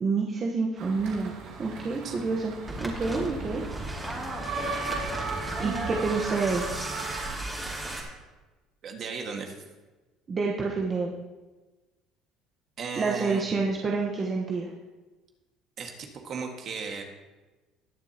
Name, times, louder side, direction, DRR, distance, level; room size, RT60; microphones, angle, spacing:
voice 1, 0.0-2.5 2.8-3.6 5.6-6.6 10.3-11.1 13.0-14.7, right 4 dB, 35° right, -1 dB, 1.2 m, -28 dB
sound 1, 0.8-7.3, right 4 dB, 70° right, 2.2 m, -37 dB
voice 2, 2.0-2.4 8.8-9.6 12.8-13.4 15.8-17.0, right 5 dB, 50° right, 3 dB, 1.8 m, -36 dB
sound 2, 2.7-8.0, right 1 dB, 10° right, 2.6 m, -35 dB
20.0 x 7.1 x 3.0 m, 1.2 s
cardioid pair, 105°, 0 cm